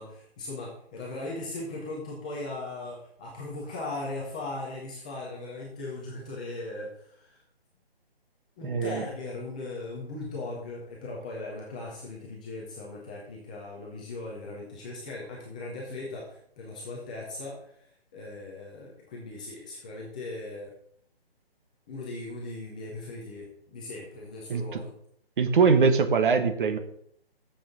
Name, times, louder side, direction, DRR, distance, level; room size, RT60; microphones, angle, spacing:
voice 1, 0.0-7.4 8.6-17.9 18.1-20.7 21.9-24.9, left 2 dB, 10° left, -4 dB, 0.5 m, -38 dB
voice 2, 8.6-9.0 24.5-24.8 25.4-26.8, right 5 dB, 55° right, 9 dB, 1.2 m, -22 dB
7.1 x 6.1 x 6.9 m, 0.68 s
hypercardioid pair, 160°, 31 cm